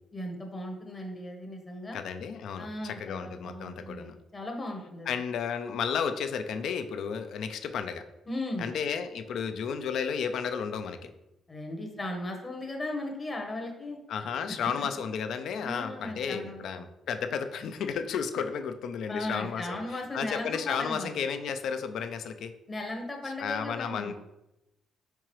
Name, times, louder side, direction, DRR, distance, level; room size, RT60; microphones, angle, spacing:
voice 1, 0.1-2.0 2.6-5.1 8.3-8.7 11.5-14.0 14.5-14.9 15.6-16.6 19.1-21.1 22.7-24.1, left 1 dB, 25° left, 2 dB, 0.9 m, -37 dB
voice 2, 1.9-4.1 5.1-8.0 8.6-11.1 14.1-19.8 20.1-22.5 23.4-24.1, left 6 dB, 75° left, 9 dB, 0.4 m, -33 dB
4.6 x 3.7 x 3.0 m, 0.91 s
cardioid pair, 90°, 0 cm